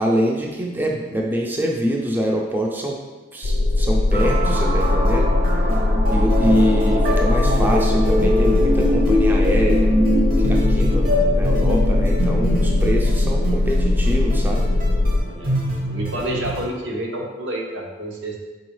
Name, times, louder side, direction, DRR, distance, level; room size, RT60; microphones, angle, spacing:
voice 1, 0.0-3.0 3.3-5.3 6.1-9.9 10.4-14.7, equal, 10° right, -1 dB, 0.4 m, -24 dB
sound 1, 3.4-15.2, left 2 dB, 75° left, 0.5 m, -19 dB
sound 2, 4.1-16.7, equal, 50° right, 0.7 m, -23 dB
voice 2, 15.9-18.4, right 1 dB, 85° right, -1 dB, 0.8 m, -28 dB
4.4 x 3.9 x 3.1 m, 1.2 s
head